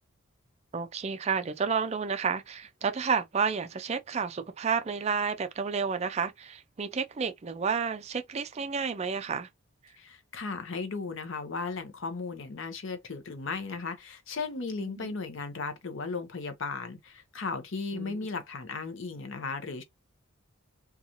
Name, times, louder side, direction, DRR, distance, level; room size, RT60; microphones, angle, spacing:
voice 1, 0.7-9.5 14.8-15.1 17.9-18.2, right 6 dB, 30° right, 0.3 m, -31 dB
voice 2, 10.0-19.8, left 4 dB, 60° left, 0.6 m, -36 dB
2.8 x 2.3 x 2.5 m
head